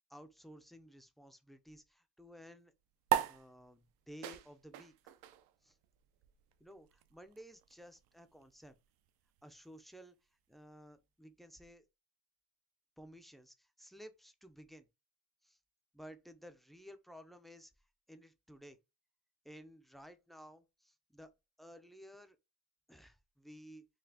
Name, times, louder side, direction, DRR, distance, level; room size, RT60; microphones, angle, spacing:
voice 1, 0.1-2.7 3.3-4.9 5.6-5.8 6.6-8.8 9.4-10.2 10.5-11.8 13.0-14.9 15.4-15.6 15.9-17.7 18.1-18.8 19.4-21.3 21.6-22.4 22.9-23.9, equal, ahead, 0.4 m, -55 dB
sound 1, 3.1-9.9, right 12 dB, 85° right, 0.5 m, -40 dB
4.0 x 2.4 x 2.7 m
cardioid pair, 105°, 35 cm